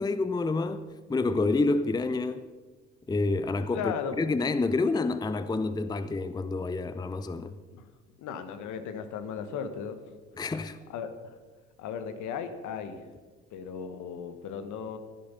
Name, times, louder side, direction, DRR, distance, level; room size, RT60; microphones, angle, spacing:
voice 1, 0.0-2.5 3.1-7.6 10.4-10.8, left 3 dB, 10° left, 0.6 m, -28 dB
voice 2, 3.7-4.1 7.7-7.9 8.2-10.0 10.9-11.1 11.8-13.0 13.5-15.0, left 7 dB, 55° left, 1.5 m, -36 dB
14.0 x 11.5 x 5.6 m
figure-of-eight pair, 55°, 34 cm